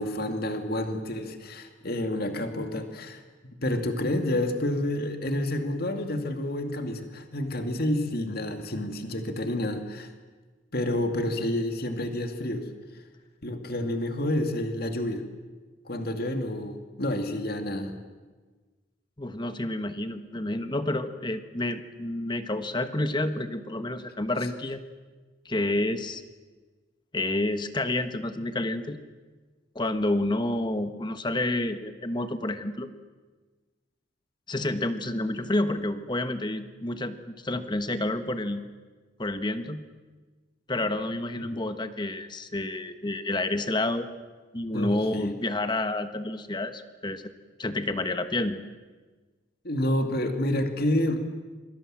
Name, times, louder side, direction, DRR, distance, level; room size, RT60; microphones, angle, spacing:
voice 1, 0.0-10.1 10.7-12.7 13.4-15.2 15.8-18.0 41.4-41.6 44.7-45.3 49.6-51.2, left 1 dB, 50° left, 6 dB, 2.4 m, -29 dB
voice 2, 19.2-24.8 25.4-26.2 27.1-29.0 29.7-32.9 34.5-38.6 39.2-39.8 40.7-44.1 44.5-47.2 47.6-48.6, left 2 dB, 20° left, 10 dB, 1.2 m, -29 dB
27.5 x 23.0 x 7.6 m, 1.3 s
head